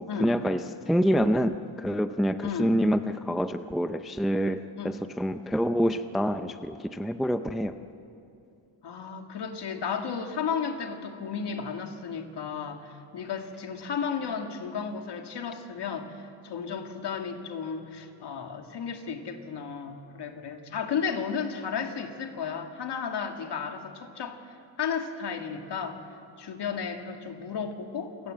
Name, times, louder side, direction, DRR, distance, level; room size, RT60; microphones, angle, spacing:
voice 1, 0.0-7.7, equal, ahead, 9 dB, 0.5 m, -27 dB
voice 2, 2.4-2.8 4.8-5.0 8.8-24.4 24.8-26.0 26.4-28.3, left 6 dB, 55° left, 5 dB, 2.1 m, -33 dB
28.0 x 18.0 x 7.8 m, 2.6 s
cardioid pair, 135°, 48 cm